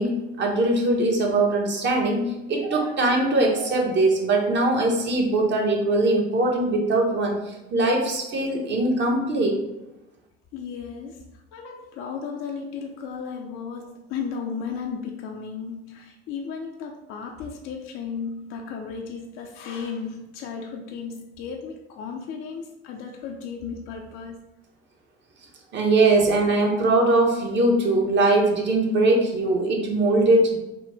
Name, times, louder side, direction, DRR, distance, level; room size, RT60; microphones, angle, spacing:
voice 1, 0.0-9.6 25.7-30.6, right 2 dB, 35° right, 0 dB, 1.1 m, -21 dB
voice 2, 10.5-24.4, left 6 dB, 45° left, 2 dB, 0.6 m, -35 dB
5.1 x 2.4 x 3.3 m, 0.96 s
figure-of-eight pair, 60°, 31 cm